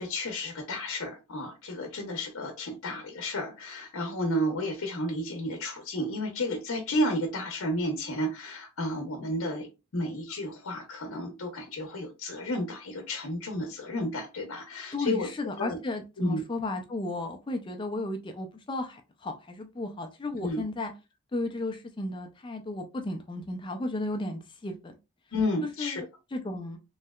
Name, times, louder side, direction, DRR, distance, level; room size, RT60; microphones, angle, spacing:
voice 1, 0.0-9.7 9.9-15.3 15.6-15.8 16.2-16.4 20.4-20.6 25.3-26.0, left 1 dB, 80° left, 3 dB, 0.6 m, -32 dB
voice 2, 14.9-20.9 21.3-24.9 25.8-26.8, left 2 dB, 25° left, 5 dB, 0.3 m, -34 dB
3.2 x 2.7 x 2.2 m, 0.27 s
head